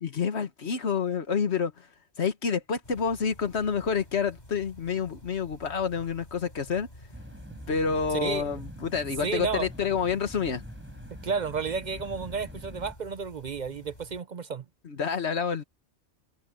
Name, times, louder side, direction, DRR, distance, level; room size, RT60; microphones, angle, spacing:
voice 1, 0.0-1.7 2.2-6.9 7.7-10.6 14.8-15.6, left 6 dB, 70° left, 1.7 m, -28 dB
sound 1, 2.8-14.2, left 1 dB, 35° left, 7.3 m, -51 dB
sound 2, 7.1-12.9, equal, 10° right, 7.9 m, -44 dB
voice 2, 9.2-9.7 11.2-14.6, right 5 dB, 50° right, 0.7 m, -32 dB
omnidirectional pair, 1.2 m